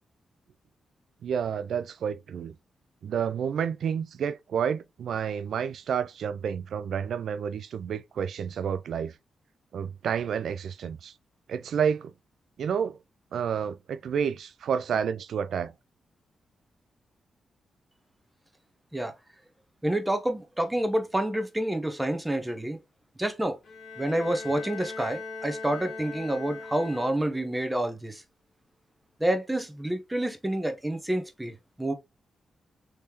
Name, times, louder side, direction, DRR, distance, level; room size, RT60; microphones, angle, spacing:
voice 1, 1.2-2.5 3.0-9.1 9.7-11.1 11.5-12.1 12.6-13.0 13.3-15.7, right 7 dB, 75° right, 0.3 m, -30 dB
voice 2, 19.8-22.8 23.2-23.6 24.0-28.2 29.2-31.9, right 1 dB, 15° right, 0.9 m, -28 dB
Bowed string instrument, 23.6-27.6, left 4 dB, 60° left, 1.5 m, -40 dB
3.5 x 3.2 x 2.9 m
supercardioid pair, 50°, 0 cm